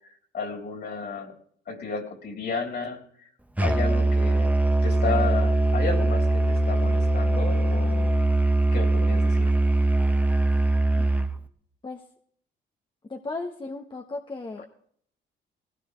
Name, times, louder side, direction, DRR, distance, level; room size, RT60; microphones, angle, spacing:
voice 1, 0.3-1.3 1.7-3.0 3.6-4.5 4.8-8.1 8.7-9.5, left 5 dB, 55° left, 1 dB, 3.7 m, -32 dB
Musical instrument, 3.6-11.4, right 2 dB, 5° right, 1.0 m, -22 dB
voice 2, 13.1-14.7, left 3 dB, 25° left, 1 dB, 1.3 m, -35 dB
19.5 x 16.5 x 3.3 m, 0.62 s
cardioid pair, 90°, 20 cm